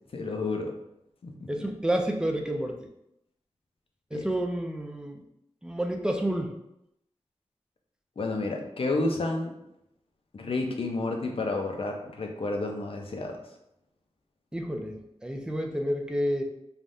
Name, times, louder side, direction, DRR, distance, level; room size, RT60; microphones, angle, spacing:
voice 1, 0.1-0.7 1.2-1.3 4.1-4.3 8.2-9.5 10.3-13.4, left 2 dB, 55° left, 2 dB, 0.5 m, -30 dB
voice 2, 1.5-2.8 4.1-5.2 5.6-6.5 14.5-16.4, right 1 dB, 5° right, 3 dB, 0.4 m, -29 dB
3.3 x 2.3 x 2.6 m, 0.82 s
wide cardioid pair, 95°, 11 cm